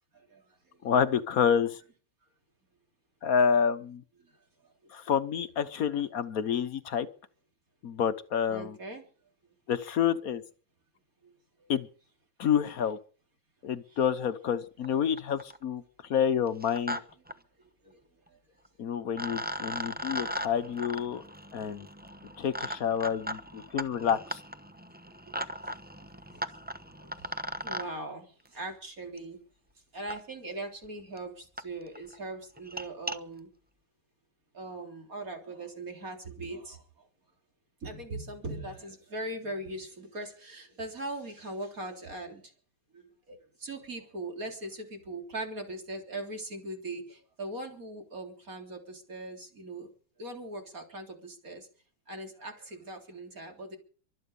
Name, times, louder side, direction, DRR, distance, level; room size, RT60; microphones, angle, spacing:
voice 1, 0.8-1.8 3.2-4.0 4.9-7.1 7.8-8.8 9.7-10.4 11.7-11.9 12.4-13.0 13.6-15.8 16.1-17.0 18.8-21.2 21.5-21.9 22.4-24.4, left 7 dB, 65° left, 13 dB, 1.4 m, -28 dB
voice 2, 8.5-9.0 13.9-14.0 15.0-15.4 17.8-18.0 20.6-20.7 26.3-26.4 27.0-29.4 29.9-33.5 34.5-36.8 37.8-42.4 42.9-49.9 50.2-51.7 52.1-53.8, right 2 dB, 60° right, 3 dB, 4.1 m, -40 dB
sound 1, 14.8-14.9 15.2-15.6 16.5-17.0 17.3-17.4 18.6-18.7 19.1-27.9 29.2-29.3 30.1-30.2 30.8-30.9 31.2-31.3 31.6-31.7 32.0-32.2 32.6-33.2, equal, 10° right, 0.7 m, -38 dB
24.0 x 9.1 x 5.4 m, 0.41 s
omnidirectional pair, 1.7 m